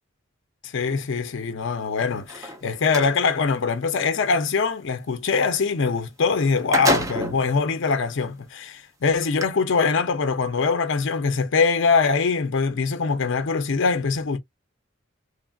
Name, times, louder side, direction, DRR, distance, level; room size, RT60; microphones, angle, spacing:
voice 1, 0.6-14.4, left 5 dB, 60° left, 0.5 m, -23 dB
sound 1, 2.2-3.1 6.0-6.1 6.4-7.5 8.2-8.3 9.2-9.4, right 1 dB, 15° right, 0.5 m, -26 dB
3.2 x 2.4 x 2.2 m
head